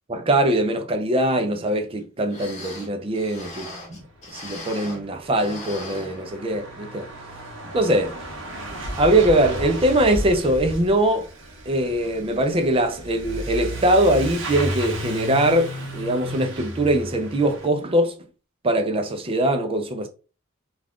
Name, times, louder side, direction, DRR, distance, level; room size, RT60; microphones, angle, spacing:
voice 1, 0.1-4.0 4.3-7.1 7.7-8.2 9.0-11.3 11.7-18.2 18.6-20.1, right 1 dB, 25° right, 0.4 m, -22 dB
sound 1, 2.0-2.1 2.3-5.1 5.4-6.7 7.1-7.2 7.9-8.1 8.6-8.7, left 1 dB, 35° left, 0.9 m, -39 dB
Truck / Accelerating revving vroom, 4.0-4.1 4.3-17.7, right 1 dB, 65° right, 0.8 m, -34 dB
2.3 x 2.3 x 3.5 m
head